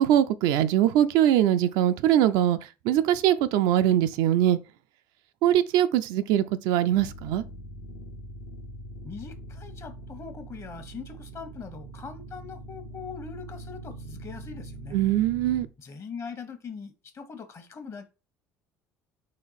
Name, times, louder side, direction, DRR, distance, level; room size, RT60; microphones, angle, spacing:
voice 1, 0.0-2.6 2.9-4.6 5.4-7.4 14.9-15.7, right 11 dB, 70° right, 0.4 m, -22 dB
sound 1, 7.0-15.7, right 1 dB, 75° left, 1.0 m, -42 dB
voice 2, 9.0-15.0 15.8-18.0, left 6 dB, 40° left, 1.0 m, -41 dB
4.2 x 2.5 x 4.0 m
hypercardioid pair, 70°, 8 cm